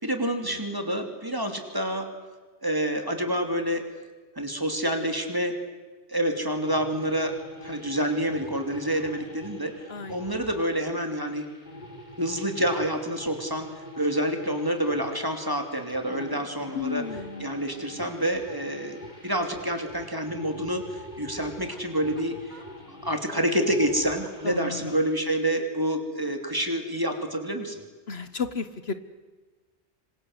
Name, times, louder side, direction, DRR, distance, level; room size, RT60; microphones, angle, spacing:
voice 1, 0.0-2.1 2.6-3.8 4.4-5.6 6.1-7.3 7.6-9.7 10.1-11.4 12.2-13.7 14.0-17.0 17.4-19.0 19.2-22.6 23.0-27.8, right 1 dB, 20° right, 5 dB, 3.2 m, -28 dB
sound 1, 6.6-25.2, left 1 dB, 40° left, 4.2 m, -44 dB
voice 2, 16.7-17.5 24.4-24.9 28.1-28.9, left 5 dB, 65° left, 11 dB, 1.4 m, -33 dB
26.5 x 26.0 x 8.1 m, 1.3 s
omnidirectional pair, 1.2 m